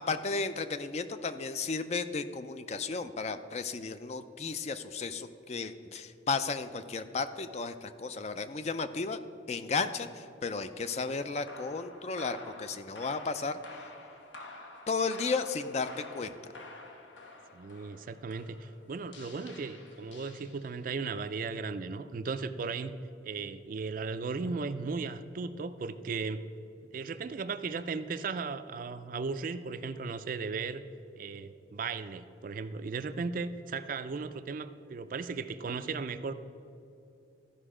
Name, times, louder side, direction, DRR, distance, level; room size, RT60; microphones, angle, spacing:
voice 1, 0.0-9.2 9.5-13.6 14.9-16.4, left 4 dB, 35° left, 11 dB, 0.4 m, -34 dB
sound 1, 10.8-21.0, left 2 dB, 85° left, 1.1 m, -49 dB
voice 2, 17.5-22.9 23.2-26.4 26.9-30.8 31.2-36.3, right 4 dB, 45° right, 11 dB, 0.4 m, -36 dB
14.0 x 5.4 x 4.9 m, 2.7 s
head